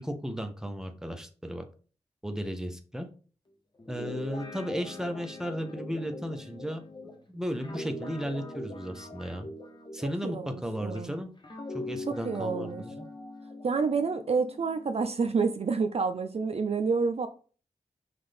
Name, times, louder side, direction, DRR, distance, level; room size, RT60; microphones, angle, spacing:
voice 1, 0.0-1.6 2.2-3.1 3.9-6.8 7.3-9.5 9.9-11.3 11.7-13.1, equal, 5° right, 0.8 m, -35 dB
Guitar, 3.8-11.0 11.4-15.1, left 2 dB, 35° left, 1.2 m, -42 dB
voice 2, 10.2-11.1 12.1-12.8 13.6-17.3, right 4 dB, 50° right, 0.4 m, -29 dB
5.8 x 2.6 x 3.4 m
cardioid pair, 50°, 13 cm